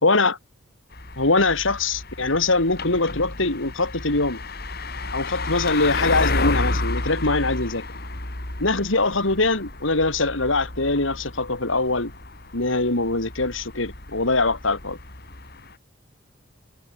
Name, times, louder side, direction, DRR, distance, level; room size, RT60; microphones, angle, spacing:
voice 1, 0.0-0.4 1.2-4.4 5.1-7.8 8.6-12.1 12.5-15.0, left 3 dB, 70° left, 3.1 m, -22 dB
sound 1, 0.9-15.7, left 2 dB, 50° left, 3.7 m, -31 dB
head